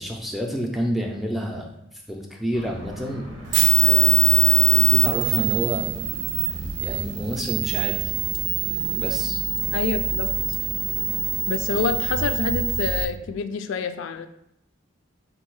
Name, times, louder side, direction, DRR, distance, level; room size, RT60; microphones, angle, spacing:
voice 1, 0.0-1.7 2.1-3.3 3.8-6.1 6.4-6.5 6.8-8.0 8.9-9.4, equal, ahead, 1 dB, 0.4 m, -29 dB
sound 1, 2.5-12.3, right 1 dB, 85° right, 0.8 m, -39 dB
sound 2, 3.5-13.1, right 11 dB, 60° right, 0.5 m, -23 dB
voice 2, 9.7-10.3 11.5-14.3, left 5 dB, 75° left, 10 dB, 0.3 m, -27 dB
3.8 x 2.7 x 4.5 m, 0.80 s
head